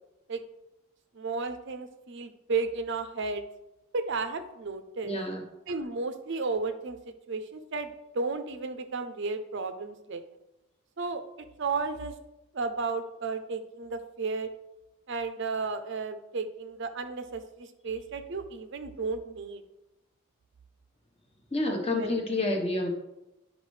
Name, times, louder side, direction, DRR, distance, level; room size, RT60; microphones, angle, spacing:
voice 1, 1.1-3.4 3.9-5.2 5.7-7.0 7.3-10.2 11.0-11.2 11.6-12.1 12.5-14.5 15.1-19.6 22.0-22.2, right 4 dB, 55° right, 9 dB, 0.5 m, -33 dB
voice 2, 5.0-5.4 21.5-22.9, left 2 dB, 25° left, 3 dB, 1.0 m, -28 dB
11.0 x 5.2 x 3.2 m, 0.94 s
head